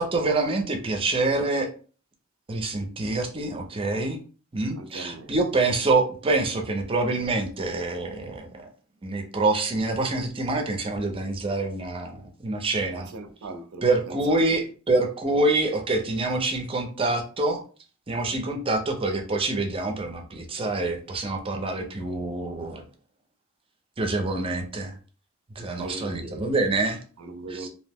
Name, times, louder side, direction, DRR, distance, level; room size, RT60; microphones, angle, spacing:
voice 1, 0.0-1.7 2.5-4.2 4.5-8.7 9.0-13.1 13.8-17.6 18.1-22.8 24.0-25.0 25.6-27.0 27.5-27.7, right 2 dB, 25° right, 0.5 m, -26 dB
voice 2, 4.8-5.3 12.9-14.4 25.6-26.5 27.2-27.7, right 2 dB, 80° right, 0.5 m, -40 dB
2.6 x 2.0 x 3.4 m
head